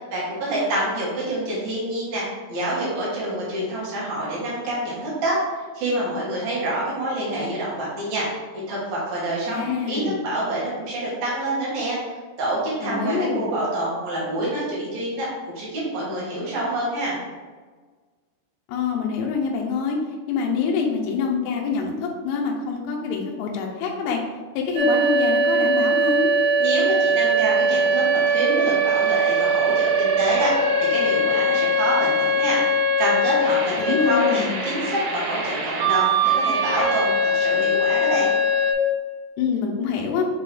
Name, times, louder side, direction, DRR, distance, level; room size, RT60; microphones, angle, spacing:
voice 1, 0.1-5.4 5.7-8.3 8.7-12.0 12.4-15.3 15.5-17.2 26.6-32.6 33.0-38.3, right 1 dB, 60° right, -7 dB, 3.1 m, -27 dB
voice 2, 9.5-10.1 12.8-13.4 18.7-20.0 20.3-24.2 24.6-26.3 33.8-34.6 39.4-40.2, left 5 dB, 80° left, 0 dB, 2.4 m, -25 dB
sound 1, 24.8-38.7, right 1 dB, 90° right, 3.1 m, -21 dB
7.4 x 3.7 x 3.4 m, 1.4 s
omnidirectional pair, 5.2 m